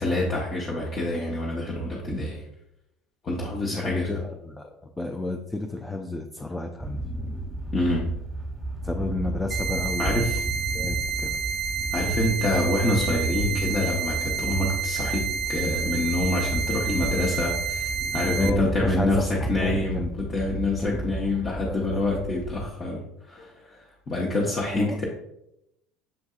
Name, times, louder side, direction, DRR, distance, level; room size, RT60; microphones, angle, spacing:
voice 1, 0.0-2.4 3.2-4.1 7.7-8.1 10.0-10.4 11.9-23.8 24.1-25.0, left 1 dB, 35° left, -4 dB, 1.0 m, -26 dB
voice 2, 3.7-7.0 8.8-10.3 10.7-11.4 18.3-20.1 21.7-22.0 24.6-25.0, left 2 dB, 15° left, 3 dB, 0.4 m, -31 dB
sound 1, 6.8-22.7, right 1 dB, 15° right, 1.1 m, -34 dB
sound 2, 9.5-18.5, right 6 dB, 50° right, 0.4 m, -30 dB
7.7 x 2.6 x 2.4 m, 0.83 s
hypercardioid pair, 75°, 0 cm